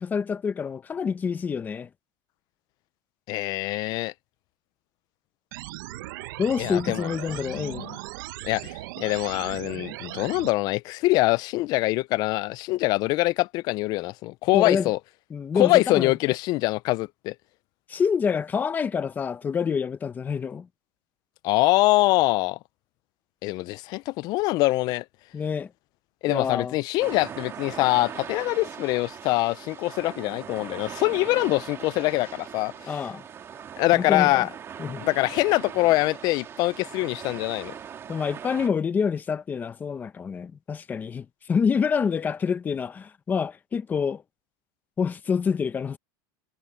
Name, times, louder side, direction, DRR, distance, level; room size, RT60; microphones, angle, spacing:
voice 1, 0.0-1.9 6.4-7.9 14.5-14.9 15.3-16.1 17.9-20.7 25.3-25.7 26.3-26.8 32.9-33.2 33.9-34.5 34.8-35.1 38.1-44.2 45.0-46.0, left 6 dB, 15° left, 0.8 m, -27 dB
voice 2, 3.3-4.1 6.6-8.0 8.4-15.0 15.5-17.3 21.4-22.6 23.4-25.0 26.2-33.0 33.8-34.5 35.0-37.7, left 19 dB, 35° left, 0.4 m, -24 dB
sound 1, 5.5-10.5, right 18 dB, 70° right, 0.9 m, -38 dB
sound 2, 27.0-38.7, right 8 dB, 25° right, 2.2 m, -40 dB
supercardioid pair, 165°, 11 cm